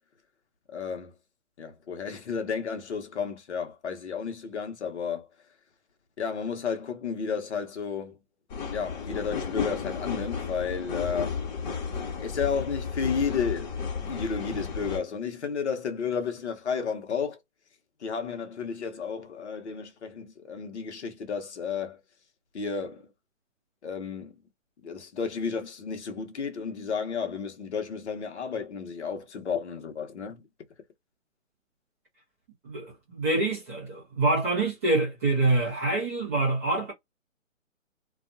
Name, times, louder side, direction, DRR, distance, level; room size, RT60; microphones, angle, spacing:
voice 1, 0.7-1.1 1.6-5.3 6.2-8.2 8.7-11.4 12.2-13.8 14.1-17.4 18.0-22.0 22.5-23.1 23.8-24.4 24.8-30.4, left 6 dB, 60° left, 1.0 m, -32 dB
sound 1, 8.5-15.0, left 6 dB, 35° left, 1.2 m, -33 dB
voice 2, 32.6-36.9, right 2 dB, 10° right, 0.6 m, -26 dB
2.6 x 2.3 x 2.5 m
hypercardioid pair, 150°, 39 cm